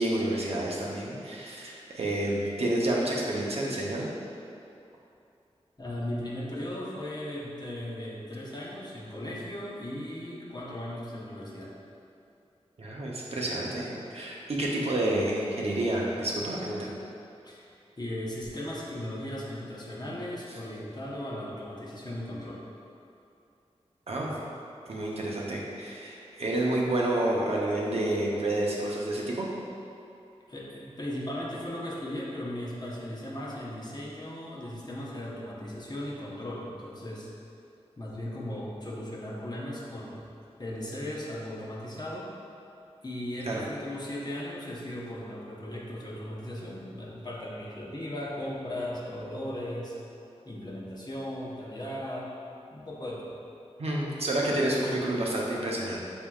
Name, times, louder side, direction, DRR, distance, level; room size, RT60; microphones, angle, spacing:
voice 1, 0.0-4.1 12.8-16.9 24.1-24.3 24.9-29.5 43.5-43.6 53.8-56.0, right 1 dB, 65° right, -4 dB, 0.7 m, -29 dB
voice 2, 5.8-11.7 17.4-22.6 30.5-37.3 38.0-40.2 40.6-42.3 43.0-50.0 50.4-52.3 52.7-53.3, left 1 dB, 40° left, -5 dB, 0.8 m, -37 dB
5.9 x 3.6 x 2.3 m, 2.6 s
wide cardioid pair, 65°, 11 cm